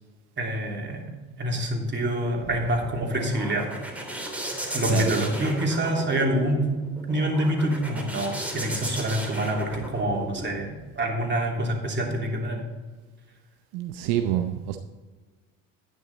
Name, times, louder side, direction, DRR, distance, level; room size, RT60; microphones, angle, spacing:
voice 1, 0.4-1.1 1.4-3.7 4.7-6.7 7.1-10.7 10.9-12.6, right 1 dB, 25° right, 0 dB, 3.0 m, -26 dB
sound 1, 2.8-10.5, right 1 dB, 5° right, 3.2 m, -35 dB
voice 2, 13.7-14.8, right 11 dB, 65° right, 6 dB, 0.8 m, -27 dB
10.5 x 9.3 x 4.1 m, 1.3 s
hypercardioid pair, 65°, 40 cm